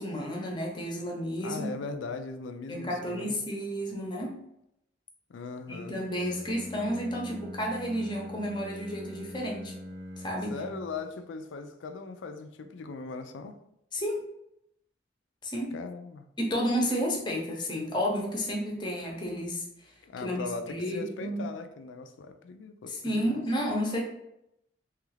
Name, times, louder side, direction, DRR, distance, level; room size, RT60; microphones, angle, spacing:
voice 1, 0.0-1.7 2.7-4.3 5.7-9.7 10.2-10.5 13.9-14.2 15.4-15.8 16.4-19.6 20.2-21.5 22.9-24.0, equal, 25° left, -1 dB, 0.7 m, -31 dB
voice 2, 1.4-3.4 5.3-6.0 10.5-13.6 15.7-16.3 20.0-23.4, left 4 dB, 80° left, 7 dB, 0.4 m, -39 dB
Bowed string instrument, 6.0-11.1, left 1 dB, 60° right, 0.8 m, -42 dB
3.1 x 2.4 x 3.2 m, 0.81 s
head